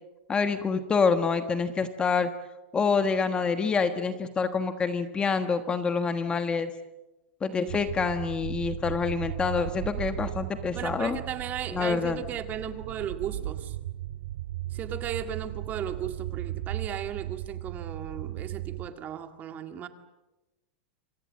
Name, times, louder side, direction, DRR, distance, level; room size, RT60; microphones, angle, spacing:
voice 1, 0.3-2.3 2.7-6.7 7.4-11.2 11.7-12.2, left 5 dB, 15° left, 9 dB, 1.3 m, -27 dB
sound 1, 7.7-18.9, right 14 dB, 70° right, 2.0 m, -36 dB
voice 2, 10.7-13.8 14.7-19.9, right 9 dB, 25° right, 8 dB, 2.0 m, -36 dB
28.0 x 25.5 x 7.6 m, 1.1 s
supercardioid pair, 150°, 6 cm